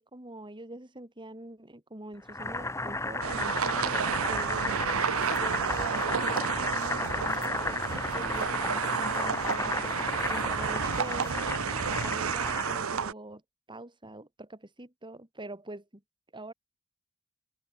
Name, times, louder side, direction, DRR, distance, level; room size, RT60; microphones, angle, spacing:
voice 1, 0.0-11.5 11.9-13.4 13.7-16.0 16.3-16.5, right 1 dB, 25° right, 3.6 m, -44 dB
Boiling, 2.3-12.9, left 2 dB, 15° left, 2.1 m, -34 dB
sound 1, 3.2-13.1, right 6 dB, 85° right, 0.8 m, -31 dB
sound 2, 5.1-11.3, left 6 dB, 40° left, 5.8 m, -56 dB
open air
head